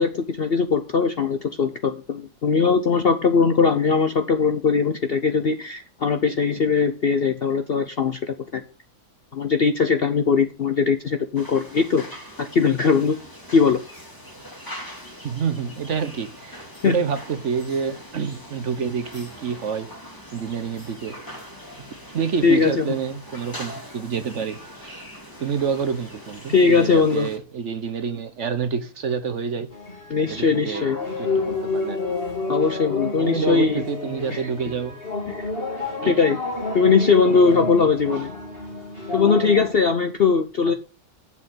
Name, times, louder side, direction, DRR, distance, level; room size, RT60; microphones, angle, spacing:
voice 1, 0.0-8.6 9.3-12.0 12.4-13.2 13.5-13.8 16.8-16.9 22.4-22.9 26.5-27.3 30.1-31.0 32.5-33.8 34.3-34.5 35.3-35.5 36.1-36.4 36.7-38.3 39.1-40.7, left 5 dB, 50° left, 0.7 m, -20 dB
sound 1, 11.3-27.4, equal, 10° left, 2.2 m, -42 dB
voice 2, 15.2-19.9 20.3-21.2 22.1-25.0 25.4-29.7 30.3-30.8 31.2-32.0 33.2-35.0 36.0-36.2 37.4-37.9, right 6 dB, 50° right, 1.1 m, -28 dB
sound 2, 29.7-39.7, left 3 dB, 35° left, 3.1 m, -30 dB
7.5 x 6.4 x 7.8 m
omnidirectional pair, 1.7 m